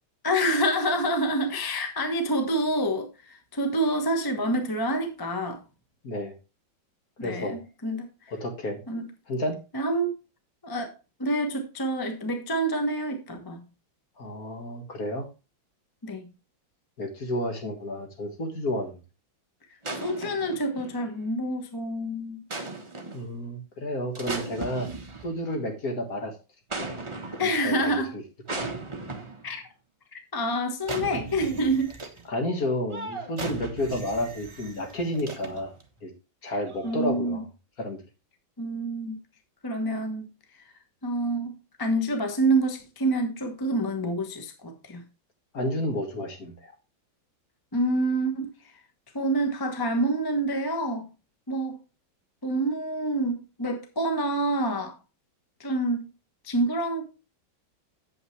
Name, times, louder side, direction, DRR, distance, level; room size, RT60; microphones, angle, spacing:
voice 1, 0.2-5.6 7.2-8.1 8.9-9.1 9.7-10.2 10.6-10.9 11.2-13.6 16.0-16.3 20.0-22.4 27.4-28.1 29.4-29.6 30.1-31.9 36.4-36.6 36.8-37.4 38.6-39.2 39.6-40.3 41.0-45.0 47.7-48.5 49.1-51.1 51.5-51.8 52.4-55.0 55.6-56.1 56.4-57.0, right 1 dB, 15° left, 0.9 m, -27 dB
voice 2, 7.2-7.6 8.3-8.8 9.3-9.6 14.2-15.3 17.0-19.0 23.1-24.9 25.2-26.3 26.8-27.0 27.4-28.2 28.5-28.7 32.3-35.7 36.0-36.1 36.4-37.5 37.8-38.0 45.5-46.7, left 1 dB, 50° left, 2.2 m, -31 dB
sound 1, 19.8-21.3 22.5-23.3 24.2-25.6 26.7-27.7 28.5-29.5 30.8-32.3 32.9-35.8 36.6-37.1, right 3 dB, 20° right, 0.8 m, -37 dB
8.6 x 7.8 x 3.2 m
omnidirectional pair, 2.1 m